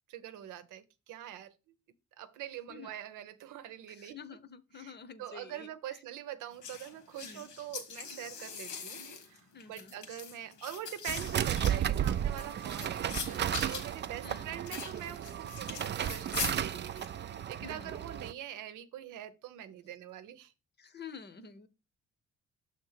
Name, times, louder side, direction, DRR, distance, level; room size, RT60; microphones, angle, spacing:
voice 1, 0.1-1.5 2.2-4.2 4.7-20.5, right 11 dB, 85° right, 0.8 m, -44 dB
voice 2, 3.9-6.0 7.2-7.5 9.5-9.9 14.2-14.6 17.6-18.0 20.8-21.7, left 6 dB, 35° left, 0.8 m, -49 dB
sound 1, 6.6-17.1, left 7 dB, 80° left, 1.8 m, -42 dB
sound 2, 11.1-18.3, right 10 dB, 35° right, 0.4 m, -34 dB
6.5 x 3.6 x 5.7 m
cardioid pair, 90°, 30 cm